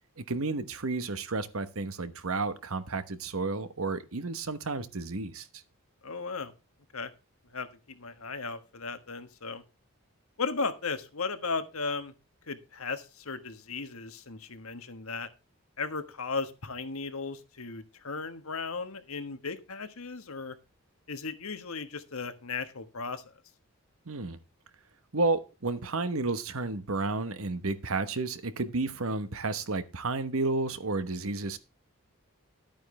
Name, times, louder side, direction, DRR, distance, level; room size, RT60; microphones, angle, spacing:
voice 1, 0.2-5.5 24.1-24.4 25.1-31.6, right 3 dB, 75° right, 1.1 m, -31 dB
voice 2, 6.0-6.5 6.9-7.1 7.5-9.6 10.4-12.1 12.5-15.3 15.8-20.5 21.1-23.4, left 4 dB, 75° left, 1.4 m, -36 dB
11.5 x 9.1 x 3.2 m
head